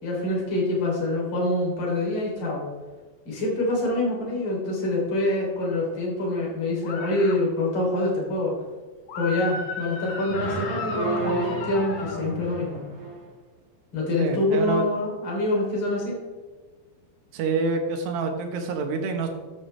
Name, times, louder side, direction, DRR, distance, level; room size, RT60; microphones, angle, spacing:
voice 1, 0.0-2.6 3.3-8.5 9.2-12.8 13.9-16.2, left 2 dB, 30° left, -3 dB, 3.6 m, -25 dB
sound 1, 6.8-7.4 9.1-12.2, left 4 dB, 65° left, 1.8 m, -34 dB
sound 2, 10.3-13.3, right 2 dB, 45° right, 2.4 m, -31 dB
voice 2, 14.2-14.8 17.3-19.3, right 4 dB, 75° right, 4 dB, 3.2 m, -27 dB
13.0 x 9.8 x 3.4 m, 1.3 s
omnidirectional pair, 5.2 m